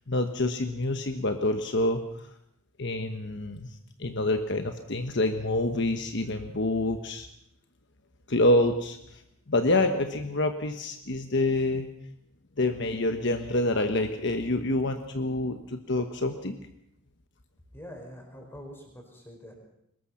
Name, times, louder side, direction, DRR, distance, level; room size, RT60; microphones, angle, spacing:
voice 1, 0.1-2.3 2.8-3.7 4.0-7.3 8.3-9.2 9.5-11.9 12.6-16.6, left 2 dB, 55° left, 7 dB, 1.2 m, -27 dB
voice 2, 17.7-19.6, equal, 10° left, 2 dB, 5.1 m, -45 dB
22.5 x 20.0 x 5.8 m, 0.75 s
head